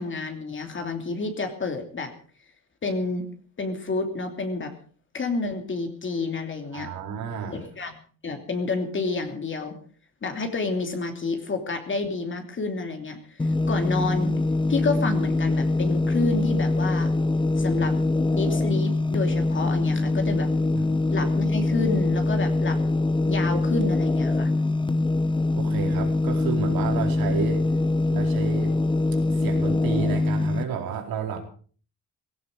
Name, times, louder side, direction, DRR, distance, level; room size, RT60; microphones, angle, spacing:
voice 1, 0.0-2.1 2.8-3.3 3.6-4.7 5.1-6.9 7.5-7.9 8.2-9.7 10.2-14.3 14.7-17.1 17.6-18.0 18.3-20.5 21.1-22.8 23.3-24.5, left 3 dB, 35° left, 5 dB, 2.9 m, -29 dB
voice 2, 6.7-7.7 20.7-20.9 25.5-27.6 28.1-28.7 29.3-31.4, right 7 dB, 85° right, 3 dB, 4.3 m, -31 dB
sound 1, 13.4-30.6, left 2 dB, 15° left, 0.9 m, -23 dB
17.0 x 16.5 x 5.0 m, 0.43 s
cardioid pair, 120°, 35 cm